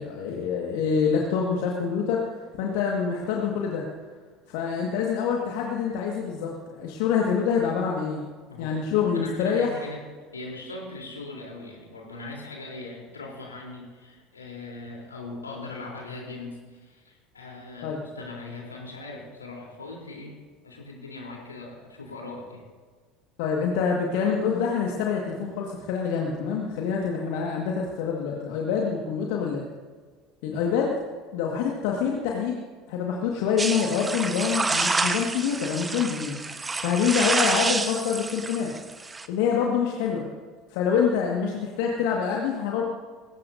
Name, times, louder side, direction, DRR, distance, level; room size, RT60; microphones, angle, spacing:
voice 1, 0.0-2.2 2.6-3.8 4.5-8.2 8.6-9.9 17.8-18.0 23.4-29.7 30.4-30.9 31.3-32.6 32.9-36.4 36.8-38.7 39.3-40.3 40.7-42.8, left 6 dB, 60° left, -1 dB, 1.8 m, -26 dB
voice 2, 8.5-8.8 9.1-10.0 10.3-20.4 20.6-22.6 37.2-37.3, left 2 dB, 85° left, -1 dB, 3.6 m, -40 dB
sound 1, 33.6-39.3, right 3 dB, 20° right, 1.2 m, -28 dB
21.0 x 17.5 x 2.7 m, 1.5 s
figure-of-eight pair, 65°, 0 cm